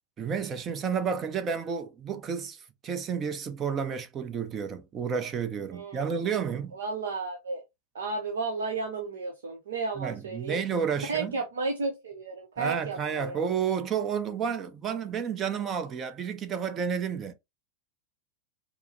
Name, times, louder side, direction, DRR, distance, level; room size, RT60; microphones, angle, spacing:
voice 1, 0.2-6.7 10.0-11.4 12.6-17.3, right 7 dB, 25° right, 0.7 m, -31 dB
voice 2, 5.7-6.2 6.7-7.6 7.9-10.6 11.1-13.4, right 4 dB, 65° right, 0.7 m, -33 dB
4.7 x 2.0 x 2.7 m
figure-of-eight pair, 90°, 0 cm